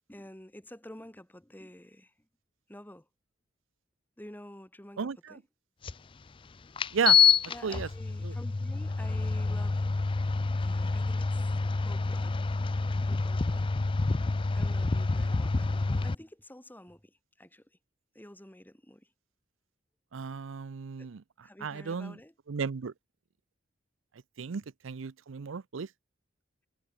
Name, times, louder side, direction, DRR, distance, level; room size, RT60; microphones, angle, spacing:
voice 1, 0.1-2.1 2.7-3.1 4.2-5.4 7.5-9.9 10.6-11.5 11.8-12.4 12.9-13.7 14.5-17.7 18.1-19.1 21.0-21.1 21.4-22.3, left 1 dB, 10° left, 2.4 m, -49 dB
voice 2, 5.0-5.4 6.9-7.2 7.6-7.9 8.2-8.3 20.1-21.2 21.6-22.2 22.5-22.9 24.4-25.9, right 6 dB, 90° right, 0.6 m, -34 dB
sound 1, 5.8-5.9 6.8-16.1, left 4 dB, 25° left, 0.4 m, -27 dB
head